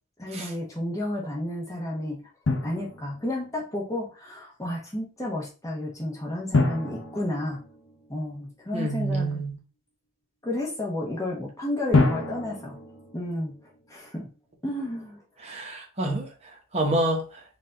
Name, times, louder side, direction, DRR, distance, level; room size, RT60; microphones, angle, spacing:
voice 1, 0.2-2.2 2.6-7.6 8.1-9.4 10.4-12.8 13.1-13.6 13.9-14.3 14.6-15.2, left 1 dB, 15° left, 1.1 m, -31 dB
Drum, 2.5-3.5 6.5-8.4 11.9-13.9, left 3 dB, 65° left, 1.0 m, -27 dB
voice 2, 8.7-9.5 15.4-16.3 16.7-17.2, right 1 dB, 30° right, 1.1 m, -27 dB
4.7 x 2.7 x 3.8 m
head